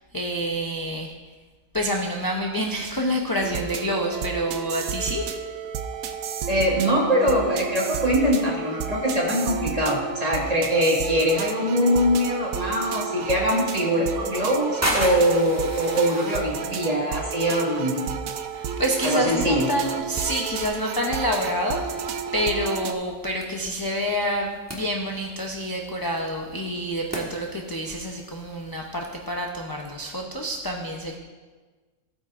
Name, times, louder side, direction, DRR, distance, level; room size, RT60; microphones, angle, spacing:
voice 1, 0.1-1.1 1.7-5.3 15.0-15.2 18.5-22.0 22.3-31.1, equal, 25° left, 0 dB, 0.5 m, -28 dB
sound 1, 3.4-22.9, right 7 dB, 85° right, 1.1 m, -32 dB
voice 2, 6.5-18.0 19.0-19.7, equal, 30° right, -3 dB, 1.8 m, -22 dB
sound 2, 13.8-29.3, right 1 dB, 10° right, 1.4 m, -37 dB
15.0 x 8.8 x 2.5 m, 1.4 s
omnidirectional pair, 1.4 m